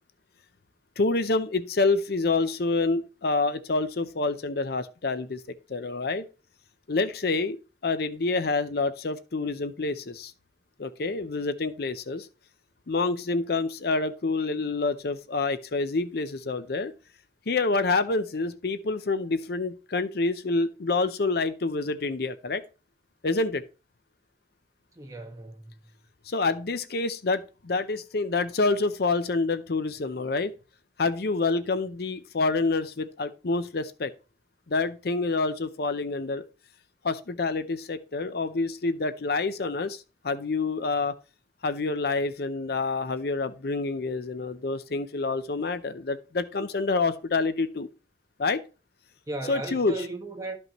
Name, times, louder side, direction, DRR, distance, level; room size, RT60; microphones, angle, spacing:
voice 1, 1.0-5.4 5.7-6.3 6.9-7.6 7.8-10.3 10.8-12.3 12.9-16.9 17.5-22.6 23.2-23.6 26.3-30.5 31.0-34.1 34.7-36.4 37.0-41.1 41.6-47.9 48.4-48.6 49.5-50.0, left 3 dB, 60° left, 0.6 m, -27 dB
voice 2, 24.9-25.9 49.3-50.6, right 2 dB, 20° right, 1.5 m, -36 dB
12.5 x 5.4 x 2.9 m
head